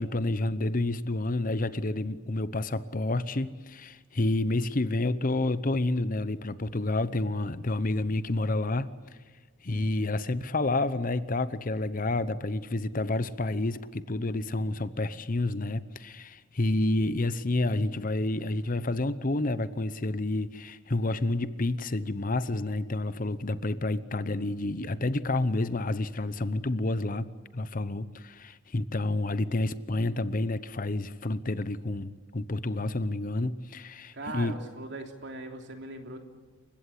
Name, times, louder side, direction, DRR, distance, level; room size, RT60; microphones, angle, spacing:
voice 1, 0.0-8.9 9.6-34.5, left 2 dB, 40° left, 0.8 m, -29 dB
voice 2, 34.1-36.2, right 2 dB, 60° right, 3.2 m, -39 dB
29.0 x 16.0 x 9.9 m
head